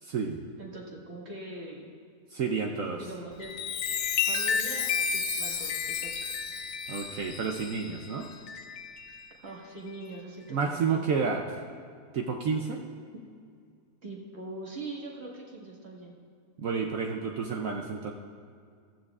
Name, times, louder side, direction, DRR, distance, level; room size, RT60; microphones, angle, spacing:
voice 1, 0.0-0.4 2.3-3.0 6.9-8.3 10.5-11.4 12.1-12.8 16.6-18.1, right 5 dB, 65° right, 2 dB, 1.0 m, -30 dB
voice 2, 0.6-1.9 3.0-3.5 4.2-6.3 9.4-11.3 14.0-16.2, right 2 dB, 40° right, -3 dB, 1.9 m, -42 dB
Chime, 3.3-9.3 9.9-10.1, left 6 dB, 70° left, 0.7 m, -32 dB
15.0 x 13.0 x 2.4 m, 2.2 s
omnidirectional pair, 1.7 m